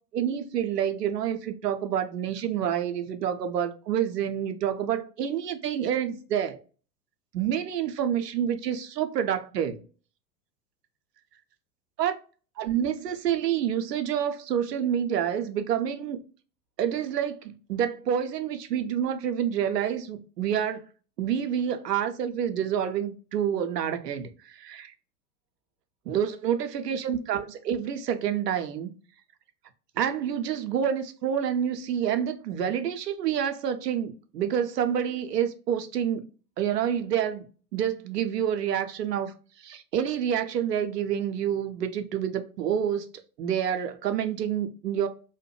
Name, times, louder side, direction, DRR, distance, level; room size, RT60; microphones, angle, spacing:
voice 1, 0.1-6.6 7.3-9.8 12.0-12.1 12.6-16.2 16.8-20.9 21.2-24.9 26.1-28.9 30.0-36.2 36.6-37.5 37.7-43.1 43.4-45.1, right 9 dB, 80° right, 0.6 m, -28 dB
2.8 x 2.1 x 3.0 m
figure-of-eight pair, 90°, 48 cm